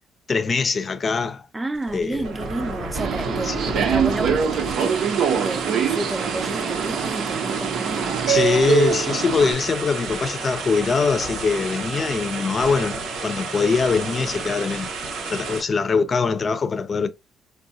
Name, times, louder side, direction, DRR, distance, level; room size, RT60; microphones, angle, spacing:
voice 1, 0.3-1.4 1.9-2.3 3.3-3.8 8.3-14.9 15.3-17.1, left 5 dB, 40° left, 0.5 m, -22 dB
voice 2, 1.5-5.1 5.4-8.2, right 2 dB, 15° right, 0.5 m, -31 dB
sound 1, 1.7-15.6, right 3 dB, 90° right, 1.0 m, -31 dB
Subway metro underground, 2.9-9.5, right 7 dB, 70° right, 0.6 m, -24 dB
3.7 x 2.3 x 2.7 m
cardioid pair, 90°, 0 cm